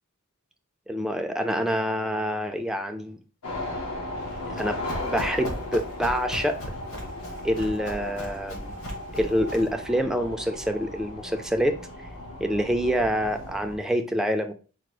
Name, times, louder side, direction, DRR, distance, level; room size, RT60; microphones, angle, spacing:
voice 1, 0.9-3.2 4.5-4.8 5.0-6.6 7.4-8.8 9.1-11.8 12.4-14.5, equal, ahead, 5 dB, 0.4 m, -26 dB
sound 1, 3.4-13.8, left 1 dB, 85° left, 1.4 m, -36 dB
Run, 4.2-9.8, equal, 65° left, 1.5 m, -38 dB
4.8 x 2.1 x 4.7 m, 0.36 s
head